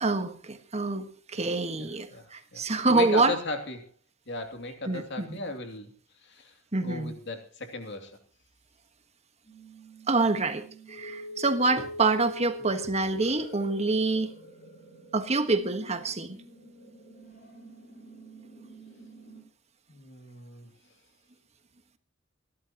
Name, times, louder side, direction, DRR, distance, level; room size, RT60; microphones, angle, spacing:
voice 1, 0.0-3.3 4.9-5.4 6.7-7.1 10.1-14.3 15.1-16.4, right 3 dB, 35° right, 9 dB, 1.4 m, -26 dB
voice 2, 1.8-3.9 4.3-5.9 6.2-8.2 19.9-20.7, left 2 dB, 60° left, 5 dB, 2.7 m, -37 dB
sound 1, 9.4-19.4, left 1 dB, 45° left, 4.7 m, -45 dB
27.5 x 12.0 x 2.9 m, 0.39 s
head